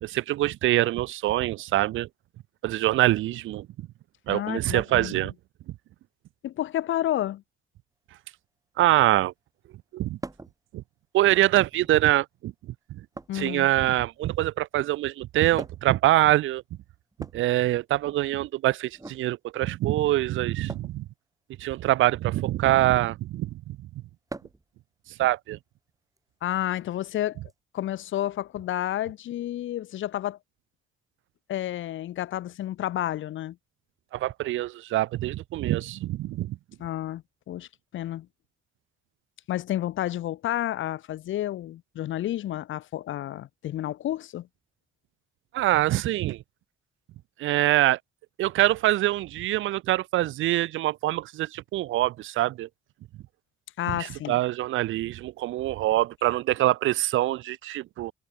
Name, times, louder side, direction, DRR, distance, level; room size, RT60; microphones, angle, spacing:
voice 1, 0.0-2.1 2.6-3.7 4.3-5.3 8.8-9.3 9.9-10.2 10.7-10.8 11.1-12.5 13.3-16.6 17.3-21.1 21.6-23.8 25.2-25.6 34.1-36.6 45.5-46.4 47.4-48.0 48.4-52.7 54.0-58.1, right 15 dB, 85° right, 1.0 m, -24 dB
voice 2, 4.3-5.3 6.4-7.4 13.3-13.7 26.4-27.4 27.7-30.4 31.5-33.6 36.8-37.7 37.9-38.3 39.5-44.5 53.8-54.4, left 13 dB, 75° left, 2.3 m, -30 dB
sound 1, 10.2-10.6 11.6-12.1 13.1-14.2 15.6-16.0 17.1-18.2 18.9-19.2 20.7-21.0 22.6-22.9 24.3-24.7 26.2-26.3 27.5-27.6, right 2 dB, 15° right, 4.6 m, -42 dB
cardioid pair, 90°, 20 cm